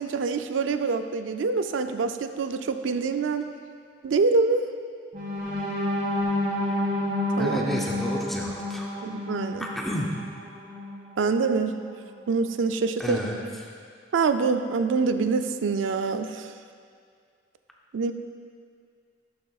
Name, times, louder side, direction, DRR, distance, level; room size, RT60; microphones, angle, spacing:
voice 1, 0.0-3.5 4.0-4.6 7.4-7.7 9.0-9.7 11.2-11.8 12.3-13.2 14.1-16.5 17.9-18.1, right 4 dB, 85° right, 9 dB, 0.4 m, -25 dB
sound 1, 5.1-11.1 11.6-11.7 12.1-12.3, left 1 dB, 40° right, 1.3 m, -29 dB
voice 2, 7.4-8.9 9.6-10.1 13.0-13.4, equal, ahead, -3 dB, 0.6 m, -30 dB
12.0 x 6.7 x 2.4 m, 2.2 s
head